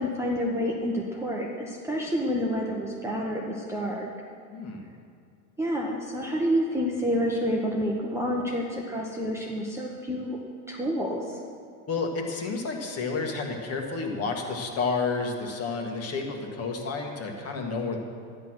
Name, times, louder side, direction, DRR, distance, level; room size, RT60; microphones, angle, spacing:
voice 1, 0.0-4.1 5.6-10.4 10.7-11.4, equal, 5° right, -3 dB, 1.0 m, -28 dB
voice 2, 4.5-4.9 11.9-18.0, left 4 dB, 30° left, 2 dB, 1.8 m, -30 dB
11.0 x 10.0 x 6.2 m, 2.3 s
supercardioid pair, 135°, 47 cm